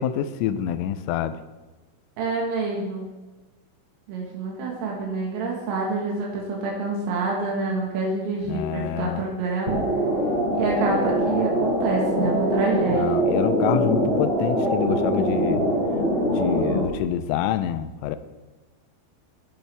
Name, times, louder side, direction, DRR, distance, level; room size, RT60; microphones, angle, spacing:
voice 1, 0.0-1.4 8.5-9.2 12.9-15.6 16.3-18.2, left 10 dB, 80° left, 12 dB, 3.0 m, -27 dB
voice 2, 2.2-3.1 4.1-9.8 10.5-13.2, right 3 dB, 80° right, -2 dB, 4.2 m, -27 dB
sound 1, 9.7-16.8, equal, 20° right, 2.4 m, -23 dB
18.0 x 7.1 x 3.4 m, 1.2 s
omnidirectional pair, 5.9 m